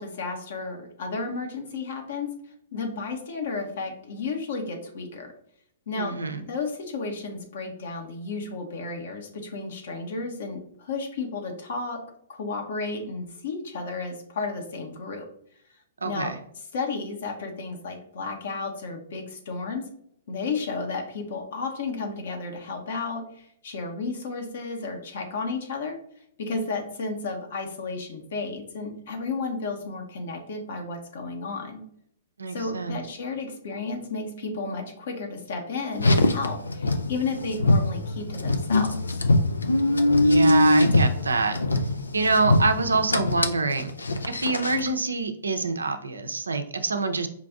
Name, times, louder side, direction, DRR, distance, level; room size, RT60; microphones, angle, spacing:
voice 1, 0.0-2.3 2.7-5.3 5.9-12.0 12.3-15.3 16.0-16.4 16.7-19.9 20.3-26.0 26.4-31.8 32.5-39.2, left 4 dB, 65° left, 3 dB, 1.2 m, -33 dB
voice 2, 6.0-6.5 16.0-16.4 32.4-33.0 40.2-41.6 42.1-43.9 44.3-47.3, right 3 dB, 90° right, 8 dB, 0.6 m, -25 dB
Car, 35.9-44.9, left 2 dB, 90° left, 0.5 m, -23 dB
5.2 x 2.6 x 3.5 m, 0.70 s
hypercardioid pair, 120°, 0 cm